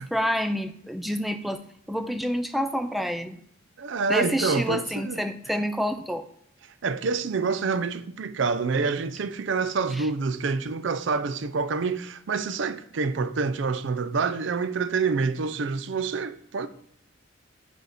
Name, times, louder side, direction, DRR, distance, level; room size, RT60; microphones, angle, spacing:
voice 1, 0.0-1.6 1.9-3.4 4.1-6.2 10.0-10.1, equal, ahead, 0.3 m, -28 dB
voice 2, 3.8-5.2 6.8-16.7, right 4 dB, 65° right, 0.4 m, -27 dB
4.7 x 4.5 x 4.9 m
head